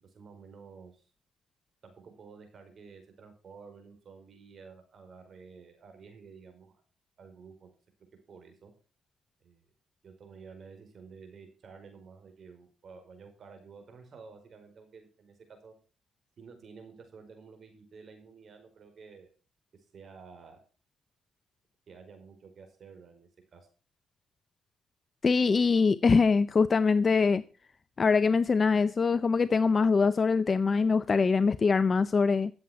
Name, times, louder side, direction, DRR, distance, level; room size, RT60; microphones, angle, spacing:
voice 1, 0.0-1.0 1.8-6.7 7.2-7.7 8.3-8.7 9.4-9.6 10.0-15.7 16.4-19.3 19.9-20.6 21.9-23.7, right 5 dB, 50° right, 4.8 m, -51 dB
voice 2, 25.2-27.4 28.0-32.5, left 4 dB, 35° left, 0.5 m, -23 dB
14.0 x 7.7 x 5.9 m
cardioid pair, 90°, 0 cm